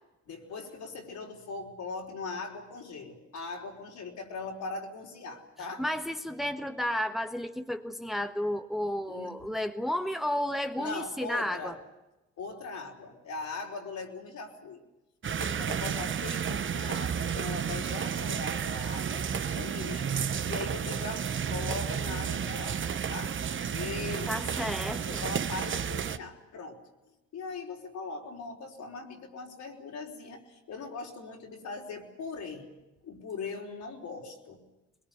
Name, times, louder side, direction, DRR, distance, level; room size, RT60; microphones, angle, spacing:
voice 1, 0.3-5.8 9.1-9.3 10.8-11.8 12.4-14.8 15.3-20.1 20.5-24.3 25.1-26.8 27.3-32.7 33.0-34.6, left 4 dB, 70° left, 1 dB, 4.9 m, -40 dB
voice 2, 5.8-11.8 24.3-25.2, left 1 dB, ahead, 7 dB, 1.3 m, -32 dB
sound 1, 15.2-26.2, right 7 dB, 40° right, 1.0 m, -32 dB
22.0 x 21.5 x 9.8 m, 1.0 s
cardioid pair, 90°, 30 cm